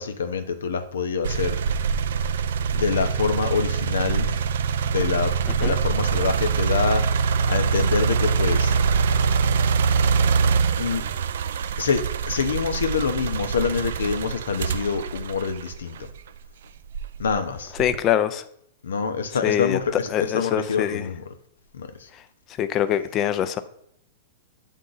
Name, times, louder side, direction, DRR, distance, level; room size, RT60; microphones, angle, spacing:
voice 1, 0.0-1.6 2.7-4.4 4.8-8.8 10.8-11.0 11.8-16.0 17.2-17.7 18.8-21.3 21.7-21.9, left 6 dB, 85° left, 9 dB, 0.7 m, -26 dB
sound 1, 1.2-16.3 16.9-18.1, right 6 dB, 75° right, 0.3 m, -24 dB
voice 2, 17.7-18.4 19.4-19.8 20.1-21.1 22.6-23.6, left 11 dB, 35° left, 12 dB, 0.5 m, -23 dB
8.1 x 3.6 x 3.9 m, 0.70 s
hypercardioid pair, 125°, 0 cm